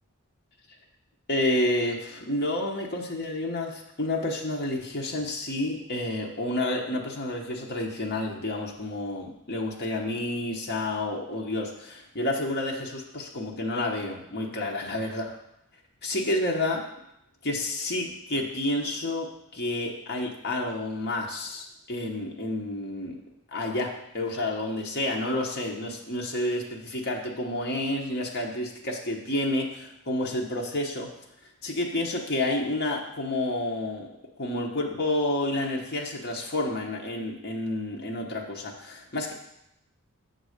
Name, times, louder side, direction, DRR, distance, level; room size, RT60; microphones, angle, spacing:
voice 1, 1.3-15.3 16.0-16.8 17.4-23.2 23.5-31.1 31.6-34.1 34.4-39.3, left 1 dB, 45° left, -1 dB, 1.0 m, -30 dB
7.3 x 4.0 x 6.4 m, 0.81 s
head